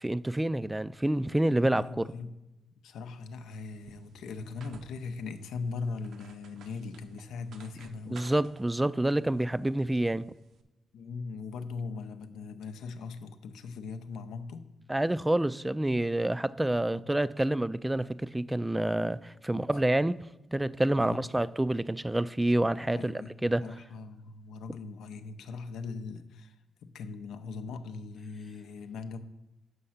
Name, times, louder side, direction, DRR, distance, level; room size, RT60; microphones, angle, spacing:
voice 1, 0.0-2.1 8.1-10.3 14.9-20.2 20.5-23.6, right 1 dB, 15° right, 0.3 m, -28 dB
voice 2, 1.8-2.4 2.8-8.3 10.9-14.6 16.9-17.1 19.5-19.7 21.0-21.3 22.9-23.3 23.6-26.6 26.8-29.2, left 4 dB, 80° left, 0.6 m, -40 dB
sound 1, 3.5-10.6, right 5 dB, 75° right, 0.7 m, -56 dB
6.4 x 5.5 x 5.7 m
supercardioid pair, 50°, 0 cm